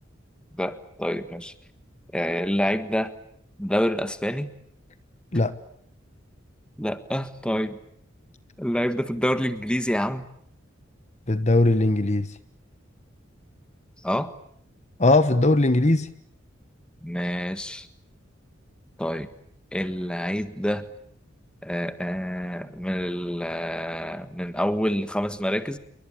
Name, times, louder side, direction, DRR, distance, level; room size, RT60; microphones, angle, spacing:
voice 1, 0.6-1.5 2.1-3.1 3.6-4.5 6.8-7.8 8.6-10.3 14.0-14.3 17.0-17.9 19.0-19.3 19.7-20.9 21.6-25.8, equal, 5° left, 1.6 m, -27 dB
voice 2, 11.3-12.3 15.0-16.1, left 2 dB, 35° left, 1.2 m, -19 dB
28.5 x 23.5 x 8.6 m
head